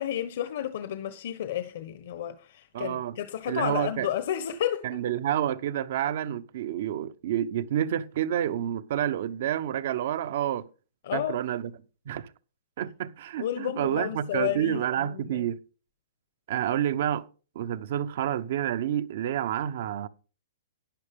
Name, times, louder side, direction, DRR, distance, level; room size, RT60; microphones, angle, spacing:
voice 1, 0.0-4.9 11.0-11.4 13.4-15.5, left 11 dB, 60° left, 1.1 m, -31 dB
voice 2, 2.7-3.2 3.5-4.1 4.8-10.7 11.1-11.7 12.1-12.3 12.8-15.6 16.5-17.3 17.5-20.1, right 11 dB, 60° right, 1.0 m, -29 dB
11.5 x 10.0 x 3.7 m
hypercardioid pair, 145°, 0 cm